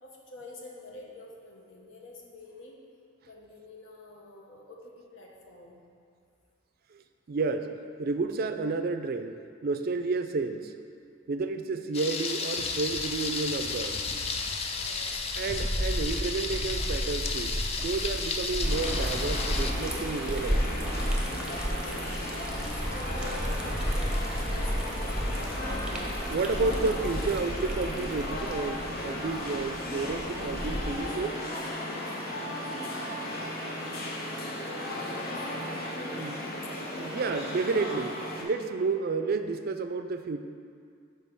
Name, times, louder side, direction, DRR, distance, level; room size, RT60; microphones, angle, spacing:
voice 1, 0.0-2.8 3.3-5.8 14.7-15.4 21.5-21.9 22.4-25.8 34.4-37.3, left 2 dB, 80° left, -1 dB, 1.1 m, -48 dB
voice 2, 6.9-7.7 8.0-9.3 9.6-10.7 11.3-14.0 15.4-20.9 26.3-31.4 36.2-36.7 37.0-40.4, right 4 dB, 50° right, 8 dB, 0.4 m, -31 dB
Thunder, 11.9-19.7, left 4 dB, 30° left, 0.4 m, -33 dB
Liquid, 15.0-31.1, equal, 5° right, 0.7 m, -33 dB
sound 1, 18.6-38.4, left 1 dB, 50° left, 1.0 m, -35 dB
5.4 x 4.5 x 6.2 m, 2.3 s
head